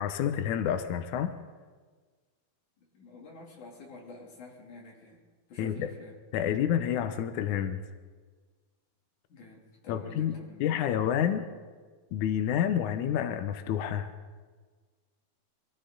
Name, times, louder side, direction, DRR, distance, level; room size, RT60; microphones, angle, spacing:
voice 1, 0.0-1.3 5.6-5.9 6.3-7.8 9.9-11.4 12.1-14.1, left 9 dB, 85° left, 9 dB, 1.7 m, -29 dB
voice 2, 2.9-5.2 5.5-6.2 9.3-10.7, left 3 dB, 55° left, -2 dB, 4.1 m, -48 dB
24.0 x 15.5 x 3.9 m, 1.5 s
omnidirectional pair, 4.5 m